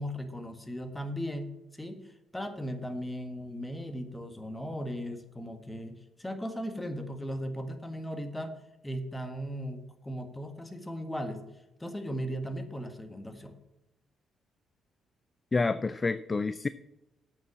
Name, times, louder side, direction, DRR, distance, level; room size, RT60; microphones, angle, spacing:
voice 1, 0.0-2.1 2.3-8.6 8.8-11.4 11.8-13.5, equal, 10° left, 6 dB, 1.7 m, -37 dB
voice 2, 15.5-16.7, left 3 dB, 30° left, 14 dB, 0.4 m, -28 dB
8.3 x 7.0 x 7.3 m, 0.92 s
cardioid pair, 90°, 0 cm